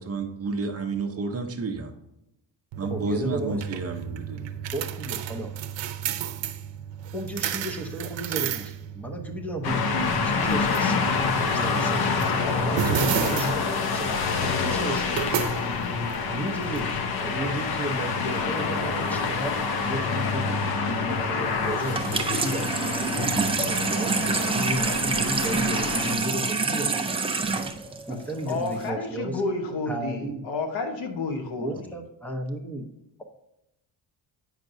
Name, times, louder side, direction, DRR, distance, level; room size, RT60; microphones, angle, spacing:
voice 1, 0.0-1.9 2.8-4.5, right 3 dB, 35° right, 4 dB, 0.8 m, -31 dB
sound 1, 2.7-17.4, right 10 dB, 80° right, 0.7 m, -33 dB
voice 2, 2.9-3.8 4.7-5.5 7.1-11.1 11.3-12.1 12.4-15.2 16.3-27.2 28.1-29.4 29.9-30.5 31.6-32.9, right 1 dB, 5° left, 3 dB, 0.7 m, -33 dB
sound 2, 9.6-26.2, left 5 dB, 55° left, 0.7 m, -27 dB
Water tap faucet / Sink (filling or washing), 21.8-28.9, right 4 dB, 15° right, 0.3 m, -27 dB
voice 3, 28.5-31.8, left 3 dB, 85° left, 4 dB, 1.2 m, -30 dB
9.0 x 5.9 x 2.6 m, 0.88 s
cardioid pair, 175°, 44 cm